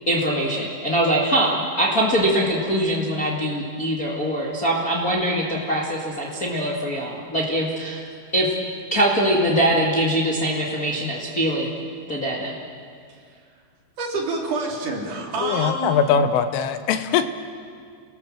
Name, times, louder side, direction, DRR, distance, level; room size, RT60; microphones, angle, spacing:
voice 1, 0.1-8.5 8.9-12.5, right 1 dB, 60° left, -3 dB, 0.9 m, -23 dB
voice 2, 14.0-16.0, right 2 dB, 45° right, -1 dB, 4.3 m, -27 dB
voice 3, 15.4-17.3, left 7 dB, 85° left, 10 dB, 3.6 m, -21 dB
29.5 x 19.0 x 7.5 m, 2.2 s
omnidirectional pair, 5.6 m